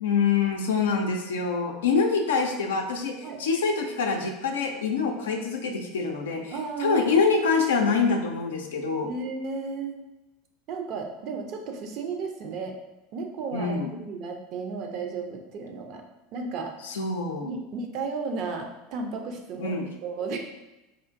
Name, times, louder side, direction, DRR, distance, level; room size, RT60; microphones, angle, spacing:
voice 1, 0.0-6.5 6.8-9.1 13.5-13.9 16.8-17.5 19.6-19.9, left 5 dB, 70° left, 3 dB, 0.4 m, -25 dB
voice 2, 6.5-7.1 9.0-10.0 10.7-12.8 13.1-16.0 16.3-16.8 17.4-19.7 20.0-20.4, right 4 dB, 45° right, 4 dB, 0.5 m, -33 dB
4.3 x 2.4 x 2.5 m, 1.0 s
figure-of-eight pair, 75°, 0 cm